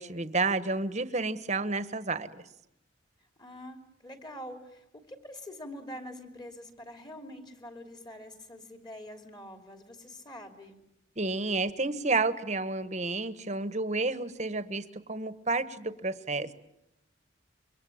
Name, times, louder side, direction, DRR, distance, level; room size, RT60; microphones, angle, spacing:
voice 1, 0.0-2.4 11.2-16.5, right 3 dB, 35° right, 12 dB, 1.3 m, -30 dB
voice 2, 3.4-10.8, left 1 dB, 20° left, 6 dB, 3.2 m, -45 dB
27.5 x 24.0 x 8.7 m, 0.84 s
head